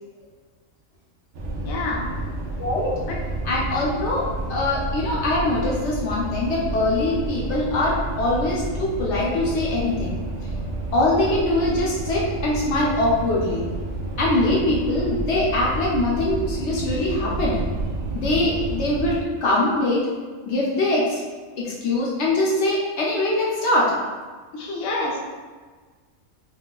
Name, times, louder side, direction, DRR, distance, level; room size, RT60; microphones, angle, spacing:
sound 1, 1.3-19.2, right 2 dB, 65° right, 0.7 m, -30 dB
voice 1, 1.6-2.1 3.1-3.2 24.5-25.2, left 2 dB, 85° left, -2 dB, 1.0 m, -27 dB
voice 2, 2.6-3.0 3.4-10.2 10.9-13.6 14.2-17.6 18.1-20.1 20.5-21.2 21.6-23.9, left 2 dB, 65° left, -4 dB, 0.8 m, -23 dB
4.1 x 2.4 x 2.2 m, 1.4 s
omnidirectional pair, 1.4 m